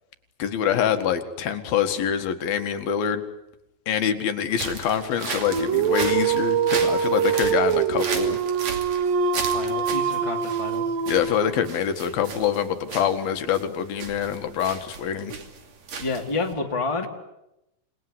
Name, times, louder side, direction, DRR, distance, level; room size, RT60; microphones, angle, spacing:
voice 1, 0.4-3.2 3.9-8.4 11.1-15.3, left 8 dB, 80° left, 8 dB, 3.6 m, -25 dB
sound 1, 4.5-16.5, right 5 dB, 50° right, 3.6 m, -35 dB
Dog, 5.4-11.8, right 7 dB, 70° right, 3.1 m, -24 dB
voice 2, 9.5-10.9 16.0-17.1, left 3 dB, 10° left, 2 dB, 2.3 m, -29 dB
28.0 x 20.5 x 9.9 m, 0.90 s
omnidirectional pair, 4.2 m